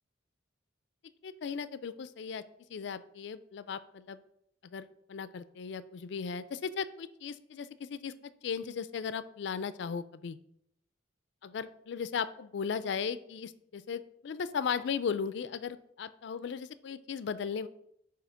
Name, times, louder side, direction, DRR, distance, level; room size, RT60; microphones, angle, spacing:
voice 1, 1.2-2.4 2.7-4.2 4.6-10.4 11.4-17.7, left 6 dB, 60° left, 15 dB, 0.3 m, -37 dB
7.6 x 2.8 x 5.0 m, 0.74 s
head